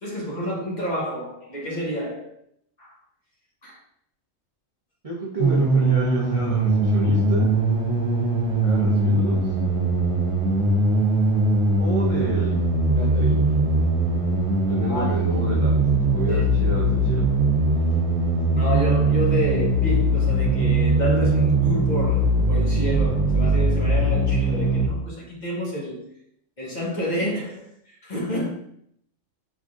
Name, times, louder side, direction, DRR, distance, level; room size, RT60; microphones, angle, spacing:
voice 1, 0.0-2.4 2.8-2.9 3.6-3.8 14.9-15.1 16.3-16.5 18.5-26.1 26.6-28.5, equal, 35° left, 1.1 m, -29 dB
voice 2, 5.0-7.5 8.6-9.4 11.8-12.6 13.0-13.4 14.7-15.8 16.1-17.3, right 2 dB, 40° right, 0.5 m, -30 dB
sound 1, 5.4-24.9, right 2 dB, 65° right, 1.1 m, -21 dB
5.0 x 3.6 x 2.5 m
omnidirectional pair, 1.3 m